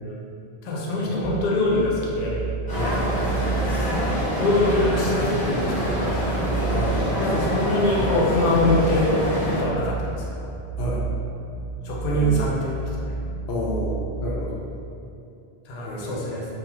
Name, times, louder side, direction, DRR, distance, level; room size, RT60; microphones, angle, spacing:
voice 1, 0.6-2.4 3.9-6.3 7.2-9.2 9.5-10.5 11.8-13.1 15.6-16.5, left 2 dB, 55° left, -4 dB, 0.5 m, -24 dB
sound 1, 1.2-14.6, right 4 dB, 40° right, 0.7 m, -31 dB
sound 2, 2.7-9.6, equal, 10° left, 0.8 m, -26 dB
voice 2, 6.7-7.6 10.8-11.1 12.1-12.4 13.5-14.7 15.9-16.2, left 1 dB, 85° left, -4 dB, 0.8 m, -30 dB
2.3 x 2.2 x 2.9 m, 2.5 s
omnidirectional pair, 1.1 m